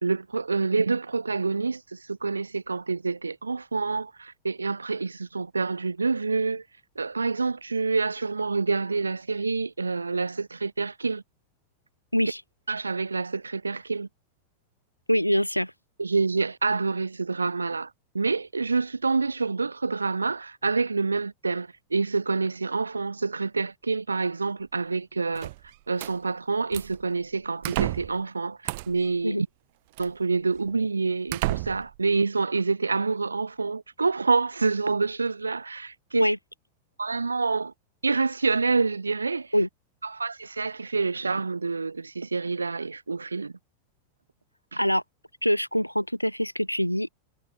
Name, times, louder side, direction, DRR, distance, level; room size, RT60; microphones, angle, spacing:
voice 1, 0.0-6.6 6.9-11.2 12.7-14.1 16.0-25.5 25.9-29.5 30.0-36.3 37.0-37.7 38.0-39.5 40.0-43.5 44.7-44.8, right 4 dB, 80° right, 3.2 m, -27 dB
voice 2, 15.1-15.7 29.2-29.4 36.1-36.4 39.5-39.7 44.7-45.0 45.4-47.1, equal, 90° left, 0.9 m, -24 dB
sound 1, 25.3-26.1 26.7-27.0 27.6-28.2 28.6-29.1 30.0-30.1 30.7-30.8 31.3-32.0, right 21 dB, 50° right, 3.6 m, -31 dB
figure-of-eight pair, 90°, 0 cm